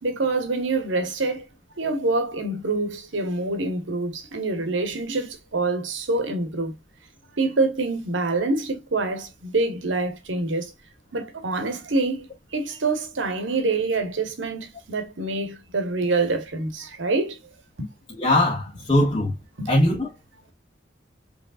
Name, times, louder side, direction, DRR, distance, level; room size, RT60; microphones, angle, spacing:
voice 1, 0.0-1.4 1.8-6.7 7.4-10.7 11.1-17.4 17.8-17.9 19.6-19.7, right 3 dB, 90° right, 1.1 m, -26 dB
voice 2, 18.1-19.3 19.7-20.1, left 1 dB, 25° left, 1.4 m, -20 dB
5.2 x 3.2 x 2.3 m
head